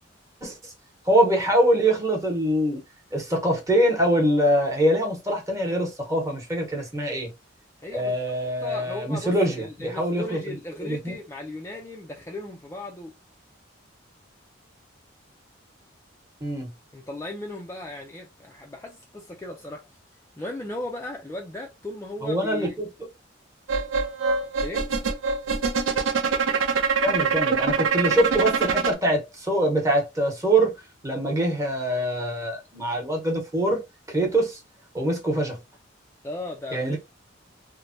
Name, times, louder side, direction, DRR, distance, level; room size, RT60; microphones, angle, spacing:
voice 1, 1.1-2.8 3.1-7.3 7.9-10.4 10.8-11.2 16.4-16.7 22.2-22.9 27.0-30.7 31.0-33.8 34.1-34.6 34.9-35.6 36.7-37.0, right 1 dB, 15° right, 0.9 m, -24 dB
voice 2, 7.8-8.1 8.6-13.1 16.9-19.9 20.4-22.8 24.6-24.8 36.2-37.0, left 1 dB, 15° left, 0.3 m, -36 dB
sound 1, 23.7-28.9, right 5 dB, 85° right, 0.5 m, -24 dB
3.1 x 2.1 x 2.5 m
head